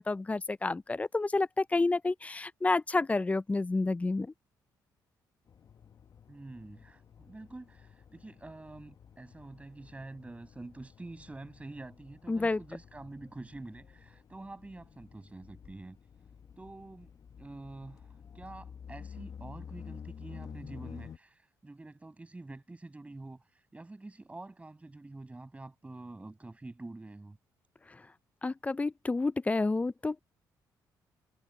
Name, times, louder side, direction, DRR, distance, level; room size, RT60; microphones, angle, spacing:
voice 1, 0.0-4.3 12.3-12.6 28.4-30.2, left 3 dB, 20° left, 0.5 m, -29 dB
sound 1, 5.5-21.2, left 7 dB, 50° left, 1.0 m, -51 dB
voice 2, 6.3-16.0 16.6-17.1 17.4-27.4, right 2 dB, 15° right, 7.6 m, -47 dB
cardioid pair, 90°, 8 cm